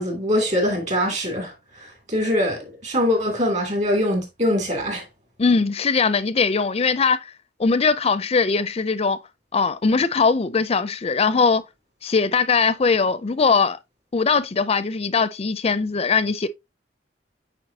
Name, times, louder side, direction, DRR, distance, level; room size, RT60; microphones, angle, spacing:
voice 1, 0.0-5.0, left 1 dB, 40° right, 2.8 m, -23 dB
voice 2, 5.4-7.2 7.6-9.2 9.5-11.6 12.0-13.8 14.1-16.5, left 4 dB, 35° left, 0.5 m, -20 dB
8.8 x 4.6 x 2.8 m
head